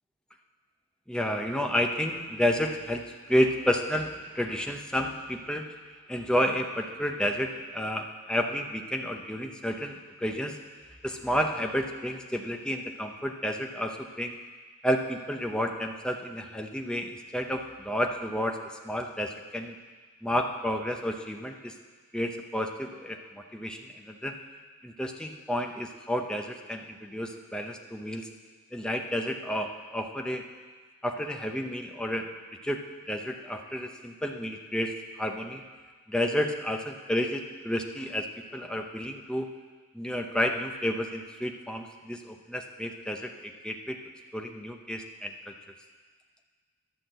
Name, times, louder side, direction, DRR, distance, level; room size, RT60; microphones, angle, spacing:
voice 1, 1.1-5.7 6.1-10.6 11.0-14.4 14.8-18.6 18.8-19.7 20.2-21.7 22.1-24.4 24.8-28.3 28.7-30.4 31.0-32.3 32.6-32.8 33.1-34.9 35.2-35.6 36.1-39.5 39.9-44.0 44.3-45.5, equal, 5° left, 3 dB, 0.7 m, -31 dB
11.0 x 5.9 x 7.9 m, 1.4 s
head